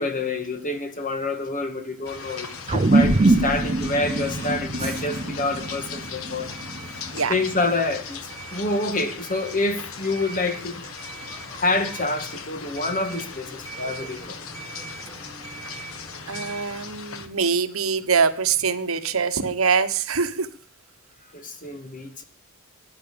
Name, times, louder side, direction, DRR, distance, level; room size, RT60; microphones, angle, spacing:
voice 1, 0.0-6.5 7.3-10.9 11.6-14.4 21.3-22.2, left 2 dB, 40° left, 2.1 m, -27 dB
sound 1, 2.1-17.3, left 6 dB, 75° left, 1.3 m, -39 dB
sound 2, 2.1-16.6, right 3 dB, 15° left, 5.1 m, -42 dB
sound 3, 2.7-7.4, right 2 dB, 30° right, 0.7 m, -23 dB
voice 2, 16.3-20.5, right 5 dB, 75° right, 1.3 m, -23 dB
14.0 x 9.9 x 7.0 m
head